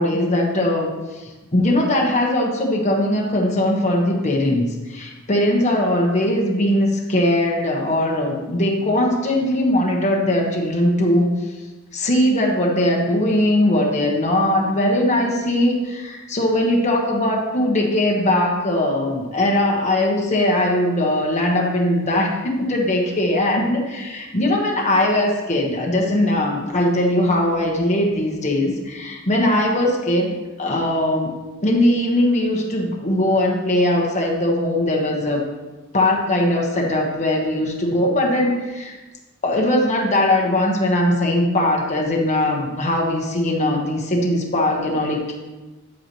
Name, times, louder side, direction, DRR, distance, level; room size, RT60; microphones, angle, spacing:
voice 1, 0.0-11.3 11.9-31.3 31.6-35.4 35.9-38.9 39.4-45.3, left 1 dB, 35° left, -1 dB, 1.2 m, -20 dB
9.3 x 8.3 x 3.0 m, 1.2 s
head